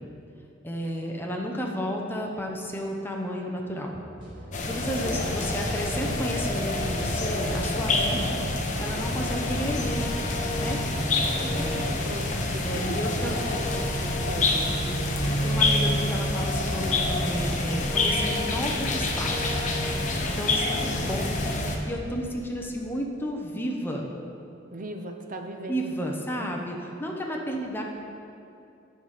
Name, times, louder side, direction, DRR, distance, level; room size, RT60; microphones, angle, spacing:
voice 1, 0.6-3.9 4.7-10.0 10.6-10.8 11.3-11.9 12.6-13.6 14.8-15.0 15.3-19.6 20.4-21.3 21.6-24.1 25.7-27.8, equal, 10° left, 0 dB, 0.8 m, -32 dB
sound 1, 4.1-19.4, equal, 25° right, 2.0 m, -43 dB
sound 2, 4.5-21.8, left 2 dB, 40° left, 0.8 m, -27 dB
voice 2, 5.0-5.7 11.1-14.7 20.9-21.4 24.7-25.9, right 1 dB, 45° right, 5 dB, 0.6 m, -39 dB
sound 3, 5.1-22.5, left 1 dB, 80° left, 1.2 m, -37 dB
9.1 x 4.2 x 6.5 m, 2.6 s
head